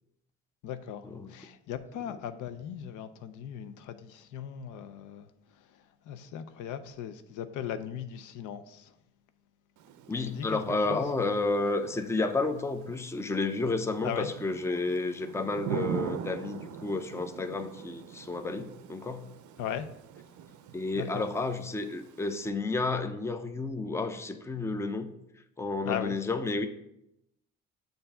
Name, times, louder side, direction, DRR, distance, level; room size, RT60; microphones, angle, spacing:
voice 1, 0.6-5.3 5.7-8.9 10.3-10.6 10.9-11.0 14.0-14.3 19.6-19.9 20.9-21.3 25.8-26.2, left 9 dB, 85° left, 0.5 m, -38 dB
Thunder / Rain, 9.8-22.5, right 8 dB, 75° right, 0.5 m, -42 dB
voice 2, 10.1-19.3 20.7-25.1 25.6-26.7, left 3 dB, 10° left, 0.4 m, -31 dB
6.8 x 2.6 x 5.4 m
cardioid pair, 90°, 30 cm